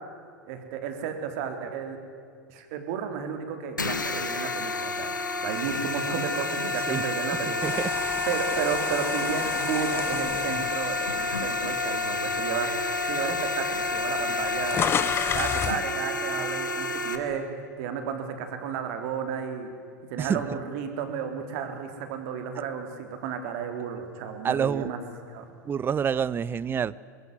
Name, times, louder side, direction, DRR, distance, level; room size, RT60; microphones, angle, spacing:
voice 1, 0.5-2.0 2.5-5.1 5.4-14.8 15.3-17.5 17.8-19.7 20.1-25.0 25.3-25.5, right 7 dB, 55° right, 6 dB, 3.8 m, -33 dB
sound 1, 3.8-17.2, left 3 dB, 90° left, 1.9 m, -29 dB
sound 2, 7.6-11.9 12.4-12.6 13.5-13.6 13.8-15.8, left 8 dB, 25° left, 0.7 m, -32 dB
voice 2, 24.4-24.9 25.7-26.9, right 7 dB, 20° right, 21 dB, 0.7 m, -27 dB
22.0 x 21.5 x 9.7 m, 2.3 s
figure-of-eight pair, 90°, 10 cm